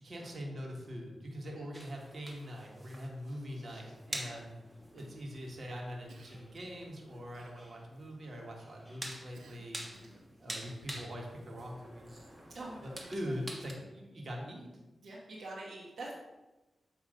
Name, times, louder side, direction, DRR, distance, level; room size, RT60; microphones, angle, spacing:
voice 1, 0.0-4.5 4.9-9.8 10.4-12.2 12.8-14.7, equal, 55° right, -1 dB, 1.6 m, -43 dB
sound 1, 1.7-13.7, right 1 dB, 10° right, 1.4 m, -48 dB
Cough, 6.1-6.9 7.3-8.0 9.3-10.4, right 4 dB, 90° right, 0.6 m, -61 dB
voice 2, 9.8-10.6 12.5-13.4 13.8-13.9 15.0-16.1, right 2 dB, 70° right, -5 dB, 1.1 m, -47 dB
7.7 x 3.0 x 5.0 m, 1.1 s
cardioid pair, 55°, 0 cm